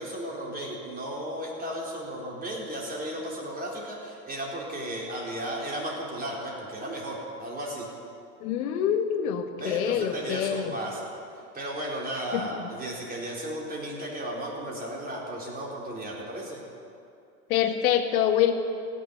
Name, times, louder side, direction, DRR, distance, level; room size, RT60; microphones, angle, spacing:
voice 1, 0.0-7.9 9.6-11.1 11.5-16.6, right 1 dB, 20° right, -3 dB, 4.1 m, -35 dB
voice 2, 8.4-10.7 12.3-12.4 17.5-18.5, left 9 dB, 65° left, 7 dB, 1.4 m, -25 dB
16.5 x 7.1 x 9.3 m, 2.6 s
hypercardioid pair, 100°, 45 cm